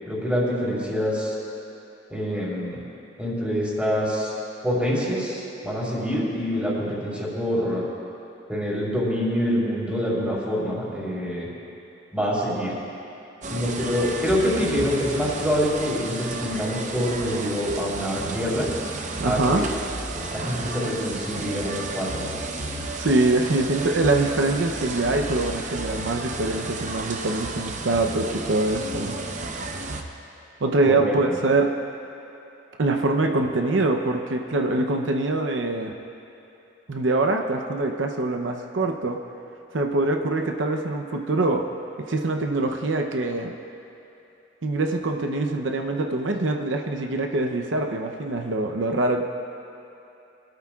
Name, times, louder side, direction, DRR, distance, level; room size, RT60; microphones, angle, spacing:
voice 1, 0.1-1.3 2.1-2.8 3.2-4.3 4.6-7.8 8.5-11.5 12.1-12.7 13.5-18.7 19.3-19.7 20.1-22.3 30.8-31.4, equal, 5° right, -7 dB, 3.5 m, -26 dB
sound 1, 13.4-30.0, right 3 dB, 40° right, 0.8 m, -32 dB
voice 2, 19.2-19.6 23.0-29.2 30.6-31.7 32.8-36.0 36.9-39.2 39.7-41.6 42.0-43.5 44.6-49.2, right 2 dB, 85° right, 3 dB, 0.8 m, -24 dB
23.0 x 13.0 x 2.4 m, 2.9 s
head